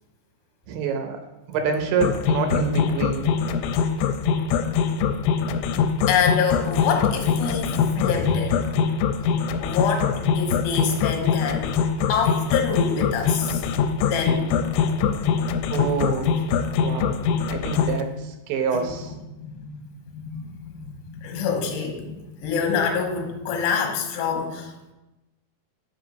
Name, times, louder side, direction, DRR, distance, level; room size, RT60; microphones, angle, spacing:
voice 1, 0.7-1.2 1.5-3.3 15.7-16.3 16.8-17.2 17.5-19.1, right 5 dB, 75° right, 5 dB, 2.9 m, -26 dB
sound 1, 2.0-18.0, left 7 dB, 90° left, 3.0 m, -22 dB
voice 2, 6.1-8.7 9.6-11.7 12.1-13.6 14.1-14.5 18.7-18.9 19.4-19.6 20.1-24.9, left 6 dB, 70° left, 3 dB, 3.0 m, -26 dB
8.9 x 5.5 x 5.2 m, 1.0 s
omnidirectional pair, 5.4 m